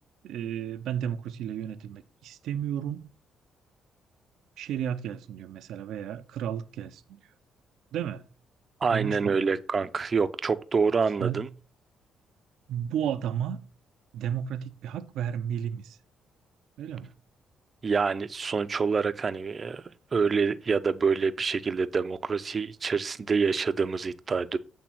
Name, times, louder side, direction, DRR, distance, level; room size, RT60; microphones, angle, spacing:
voice 1, 0.2-3.1 4.6-7.2 7.9-8.3 8.9-9.6 11.2-11.5 12.7-13.6 14.1-16.0 16.8-17.1, right 9 dB, 80° right, 0.6 m, -33 dB
voice 2, 8.8-11.5 17.8-19.8 20.1-24.6, right 5 dB, 40° right, 0.5 m, -26 dB
8.4 x 3.4 x 6.0 m
cardioid pair, 90°, 0 cm